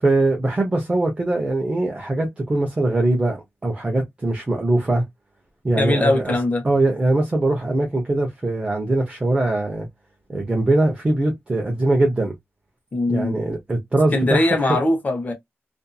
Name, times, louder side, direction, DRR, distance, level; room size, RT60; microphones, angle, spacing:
voice 1, 0.0-5.0 5.6-6.3 6.6-9.9 10.3-12.3 13.1-14.8, right 2 dB, 25° right, 0.7 m, -21 dB
voice 2, 5.8-6.6 12.9-13.4 14.1-15.3, left 2 dB, 35° left, 0.8 m, -21 dB
2.6 x 2.5 x 2.2 m
wide cardioid pair, 140°, 5 cm